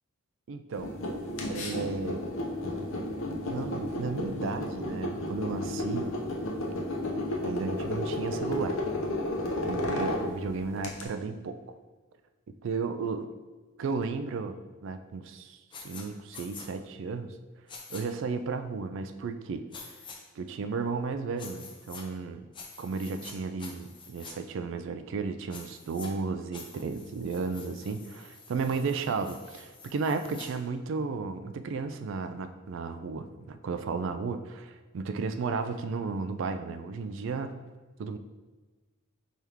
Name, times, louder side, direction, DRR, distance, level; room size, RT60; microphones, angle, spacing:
voice 1, 0.5-0.9 1.5-2.3 3.4-6.1 7.4-8.8 9.6-11.6 12.5-13.3 13.8-14.6 14.8-17.3 17.9-19.7 20.4-22.4 22.8-37.6 38.0-38.2, right 4 dB, 60° right, 9 dB, 0.3 m, -34 dB
sound 1, 0.7-11.0, left 1 dB, 65° left, 0.7 m, -32 dB
sound 2, 15.7-16.0 16.3-16.7 17.7-18.0 19.7-20.2 21.4-22.0 22.5-23.3 23.6-24.3 25.5-26.1 26.5-30.5, left 4 dB, 20° left, 0.5 m, -47 dB
4.5 x 3.4 x 3.5 m, 1.3 s
head